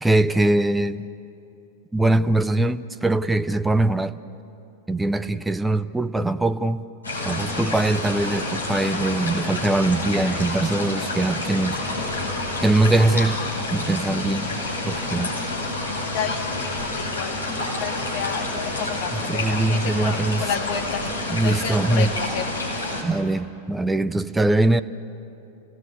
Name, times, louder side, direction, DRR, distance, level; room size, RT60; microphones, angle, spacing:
voice 1, 0.0-1.1 1.9-4.2 4.9-6.9 7.2-11.8 12.6-13.4 13.7-15.3 19.1-20.5 21.3-22.1 23.0-24.8, right 2 dB, 5° right, 0.7 m, -22 dB
sound 1, 7.0-23.0, left 2 dB, 80° left, 4.7 m, -28 dB
voice 2, 16.0-22.5, left 7 dB, 45° left, 1.9 m, -31 dB
30.0 x 18.0 x 8.2 m
figure-of-eight pair, 90°, 0 cm